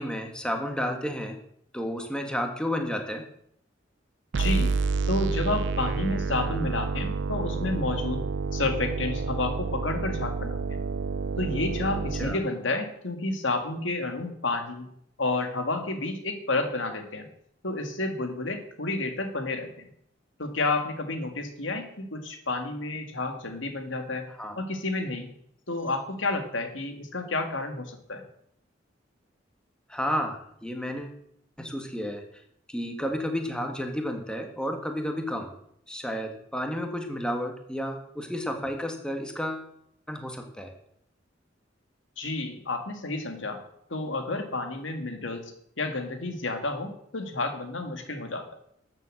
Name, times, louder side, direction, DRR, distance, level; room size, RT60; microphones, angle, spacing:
voice 1, 0.0-1.4 1.7-3.2 12.2-12.4 24.4-24.6 29.9-31.2 31.6-32.2 32.7-35.5 35.9-39.7 40.1-40.7, equal, 5° left, 4 dB, 1.7 m, -31 dB
voice 2, 4.3-4.8 5.1-8.2 8.5-10.8 11.4-14.9 15.2-17.3 17.6-19.9 20.4-24.3 24.6-25.3 25.7-28.2 42.2-43.6 43.9-48.5, left 2 dB, 75° left, 6 dB, 2.3 m, -30 dB
sound 1, 4.3-12.3, right 4 dB, 65° right, 0.5 m, -29 dB
13.0 x 7.5 x 7.8 m, 0.70 s
head